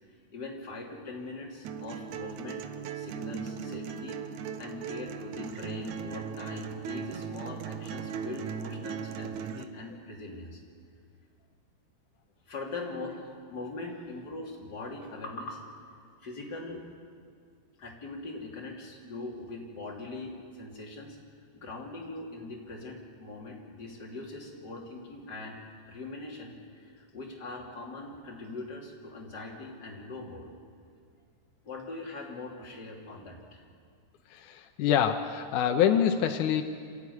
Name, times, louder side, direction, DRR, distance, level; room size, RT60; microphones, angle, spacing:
voice 1, 0.3-2.6 2.9-10.6 12.5-15.6 16.2-16.8 17.8-21.2 21.5-25.6 25.9-30.5 31.6-33.6, left 2 dB, 30° left, -2 dB, 3.6 m, -41 dB
sound 1, 1.6-9.6, right 7 dB, 70° right, 2.1 m, -38 dB
voice 2, 34.3-36.6, left 9 dB, 75° left, 5 dB, 2.3 m, -25 dB
26.5 x 14.0 x 9.6 m, 2.1 s
omnidirectional pair, 3.9 m